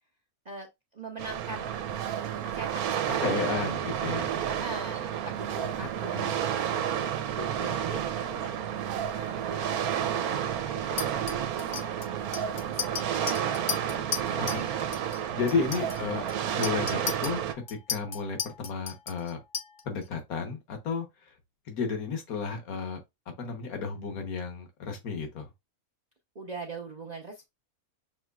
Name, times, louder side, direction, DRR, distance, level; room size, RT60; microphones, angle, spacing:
voice 1, 0.9-1.7 2.3-4.0 4.5-6.9 7.3-8.6 9.1-11.9 12.7-13.7 14.1-14.8 15.7-15.8 26.3-27.4, right 3 dB, 45° right, 0.6 m, -41 dB
sound 1, 1.2-17.5, right 9 dB, 90° right, 1.1 m, -31 dB
voice 2, 3.2-4.3 5.8-6.3 14.5-14.6 15.3-16.2 16.6-17.4 17.7-19.4 19.8-21.3 21.7-23.0 23.4-25.5, left 5 dB, 75° left, 1.6 m, -32 dB
Chink clink, 11.0-14.7 14.9-15.2 15.5-20.0, left 7 dB, 50° left, 0.7 m, -36 dB
6.3 x 3.1 x 2.3 m
omnidirectional pair, 1.5 m